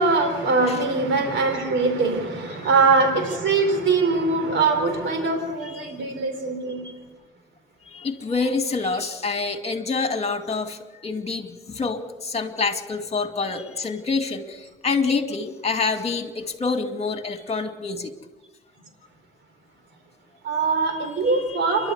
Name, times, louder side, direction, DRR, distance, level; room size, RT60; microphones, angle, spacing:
voice 1, 0.0-6.9 20.4-21.9, right 3 dB, 70° right, 5 dB, 4.3 m, -22 dB
voice 2, 5.6-5.9 7.9-18.1 20.9-21.9, left 4 dB, 30° left, 6 dB, 2.3 m, -27 dB
28.5 x 12.0 x 8.2 m, 1.2 s
cardioid pair, 90°, 20 cm